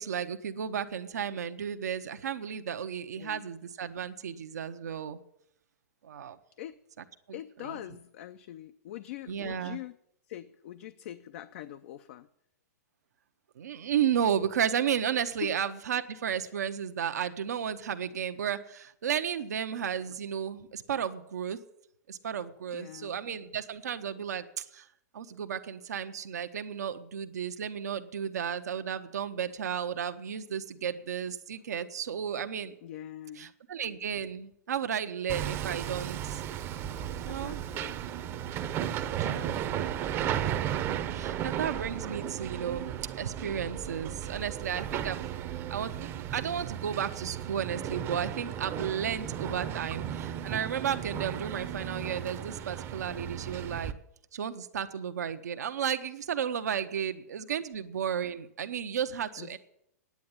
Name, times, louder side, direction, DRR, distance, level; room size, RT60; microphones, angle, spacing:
voice 1, 0.0-5.2 6.0-6.4 7.3-7.4 9.3-9.8 13.6-21.6 22.1-24.9 25.1-32.7 33.4-36.4 37.2-37.6 39.0-40.7 41.1-45.2 45.7-53.9 54.3-59.6, right 8 dB, 80° right, 9 dB, 0.9 m, -33 dB
voice 2, 3.2-3.5 6.6-6.8 7.3-9.9 10.3-12.3 15.4-15.6 22.7-23.2 32.8-33.5 37.2-38.0 38.9-40.3 41.9-42.4 59.4-59.6, left 12 dB, 55° left, 11 dB, 0.5 m, -44 dB
Hammer, 35.3-53.9, right 10 dB, 30° right, 0.7 m, -35 dB
9.5 x 8.6 x 9.6 m, 0.78 s
hypercardioid pair, 140°, 9 cm